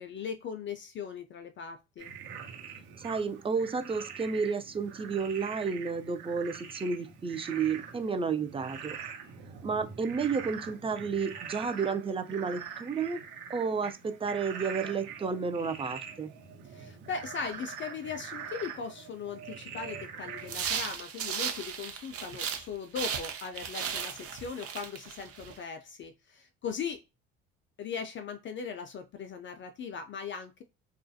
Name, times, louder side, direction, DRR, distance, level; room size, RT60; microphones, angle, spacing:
voice 1, 0.0-2.1 16.6-27.0 27.8-30.6, left 6 dB, 40° left, 0.4 m, -39 dB
Frog, 2.0-20.7, right 7 dB, 85° right, 1.0 m, -44 dB
voice 2, 3.0-9.0 9.6-13.2 13.5-16.3, right 5 dB, 20° right, 0.4 m, -31 dB
sound 1, 20.4-22.7 22.9-25.5, right 7 dB, 50° right, 0.7 m, -36 dB
2.4 x 2.1 x 2.6 m
hypercardioid pair, 70°, 31 cm